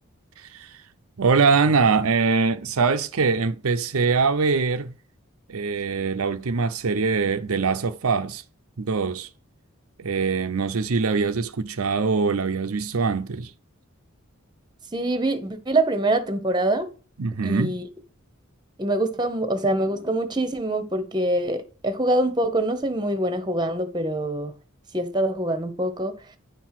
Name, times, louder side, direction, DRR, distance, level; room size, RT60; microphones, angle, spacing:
voice 1, 0.4-0.8 1.2-5.0 5.5-8.4 8.8-9.3 10.0-13.5 17.2-17.7, right 4 dB, 85° right, 0.7 m, -23 dB
voice 2, 14.9-16.9 17.4-17.9 18.8-24.5 24.9-26.1, right 1 dB, 20° right, 1.0 m, -24 dB
10.0 x 4.6 x 5.8 m
head